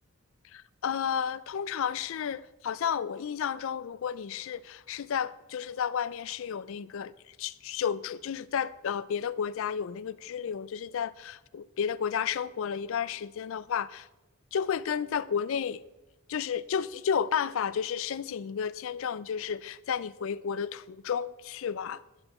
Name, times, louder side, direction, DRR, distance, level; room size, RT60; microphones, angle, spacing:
voice 1, 0.5-14.1 14.5-15.8 16.3-22.0, left 7 dB, 65° left, 0.4 m, -32 dB
10.5 x 8.9 x 4.3 m
head